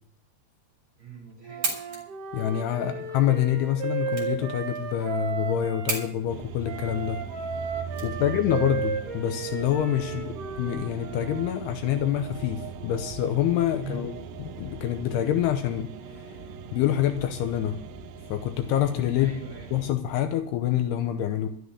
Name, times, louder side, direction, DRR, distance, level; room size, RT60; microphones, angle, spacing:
voice 1, 1.0-2.0 2.7-3.0 7.9-8.3 10.0-10.3 13.8-14.1 19.1-19.7, right 5 dB, 10° right, -3 dB, 7.5 m, -43 dB
sound 1, 1.3-8.7, right 3 dB, 35° right, 4.1 m, -37 dB
Wind instrument woodwind instrument, 1.4-6.1 6.7-11.5, right 6 dB, 60° right, 2.7 m, -34 dB
voice 2, 2.3-7.2 8.0-14.1 14.4-15.9 16.7-17.8 18.3-19.3 19.7-21.5, left 11 dB, 80° left, 8 dB, 2.8 m, -26 dB
sound 2, 6.3-19.9, right 5 dB, 90° right, 3.0 m, -40 dB
13.0 x 6.5 x 9.7 m, 0.66 s
omnidirectional pair, 4.8 m